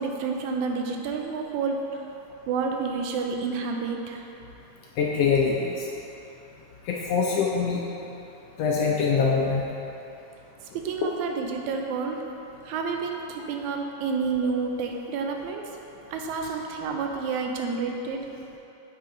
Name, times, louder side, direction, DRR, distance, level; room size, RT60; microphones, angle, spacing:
voice 1, 0.0-2.1 2.5-4.2 10.6-12.2 12.6-15.7 16.1-18.3, right 5 dB, 80° right, 2 dB, 2.0 m, -29 dB
voice 2, 5.0-5.8 6.9-7.8 8.6-9.7, left 5 dB, 75° left, -2 dB, 1.5 m, -23 dB
8.7 x 5.9 x 3.8 m, 2.9 s
omnidirectional pair, 3.4 m